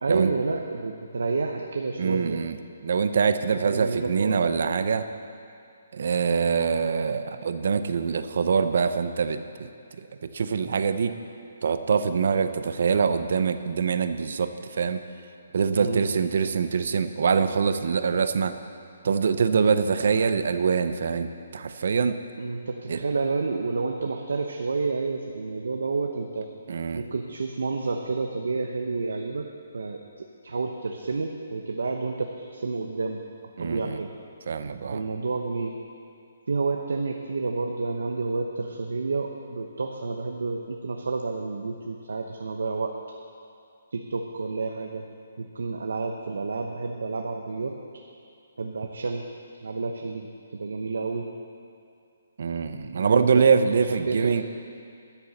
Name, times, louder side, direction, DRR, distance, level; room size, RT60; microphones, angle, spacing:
voice 1, 0.0-2.4 3.5-4.4 15.7-16.0 22.4-26.5 26.9-29.5 29.7-30.0 30.4-33.2 33.6-34.1 34.9-35.7 36.5-42.9 43.9-45.0 45.4-47.8 48.6-49.3 49.6-50.3 50.5-51.3 52.9-53.2 53.9-54.4, right 3 dB, 85° right, 3 dB, 0.9 m, -29 dB
voice 2, 2.0-2.6 2.8-5.1 5.9-9.7 10.0-10.1 10.3-11.1 11.6-15.0 15.5-18.5 19.0-22.2 22.9-23.0 26.7-27.1 33.6-34.0 34.5-35.0 52.4-54.4, right 6 dB, 55° right, 10 dB, 0.6 m, -24 dB
13.0 x 7.0 x 7.1 m, 2.5 s
hypercardioid pair, 175°, 0 cm